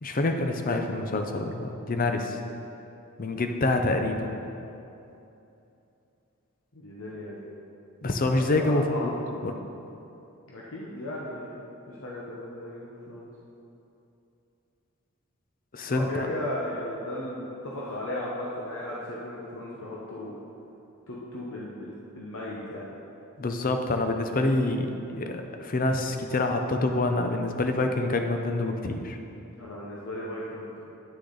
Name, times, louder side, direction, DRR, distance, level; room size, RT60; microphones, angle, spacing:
voice 1, 0.0-2.4 3.2-4.3 8.0-9.5 15.7-16.3 23.4-29.2, left 2 dB, 40° left, 5 dB, 0.6 m, -27 dB
voice 2, 6.7-7.4 8.3-9.1 10.5-13.3 15.8-20.4 21.1-22.9 29.6-30.8, left 1 dB, 65° left, -5 dB, 0.9 m, -36 dB
9.7 x 6.4 x 3.9 m, 2.8 s
head